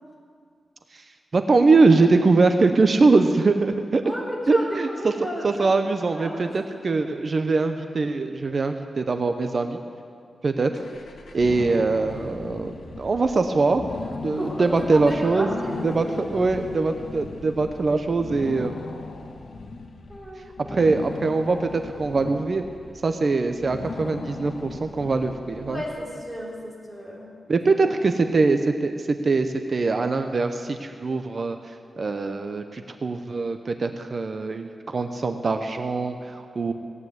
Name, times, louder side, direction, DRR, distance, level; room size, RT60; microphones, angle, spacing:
voice 1, 1.3-4.0 4.5-4.9 5.4-9.8 10.4-10.8 11.3-13.9 14.2-15.5 15.8-18.7 20.7-22.6 23.0-25.8 27.5-31.6 32.0-36.7, right 3 dB, 45° right, 7 dB, 0.7 m, -22 dB
voice 2, 4.0-5.7 6.1-6.5 14.4-15.9 20.1-20.9 25.7-27.3 27.7-27.9, equal, ahead, -5 dB, 3.6 m, -33 dB
sound 1, 10.7-26.2, left 3 dB, 85° left, 1.4 m, -38 dB
17.0 x 9.6 x 8.0 m, 2.3 s
wide cardioid pair, 150°, 0 cm